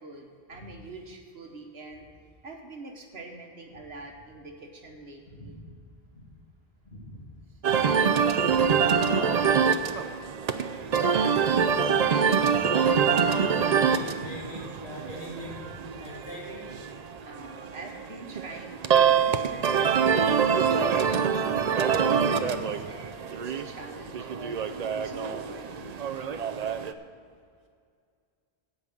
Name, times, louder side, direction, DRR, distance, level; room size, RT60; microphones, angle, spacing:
voice 1, 0.0-2.1 2.4-5.5 17.2-20.8 21.3-24.6 25.0-25.9, right 2 dB, 70° right, 3 dB, 1.6 m, -44 dB
voice 2, 5.4-5.7 6.1-6.3 6.8-7.2 8.4-9.7 10.7-10.8 11.4-11.6 12.3-16.7, left 1 dB, 65° left, -5 dB, 2.8 m, -40 dB
sound 1, 7.6-26.9, right 6 dB, 50° right, 0.5 m, -25 dB
16.5 x 5.5 x 6.2 m, 2.2 s
omnidirectional pair, 1.1 m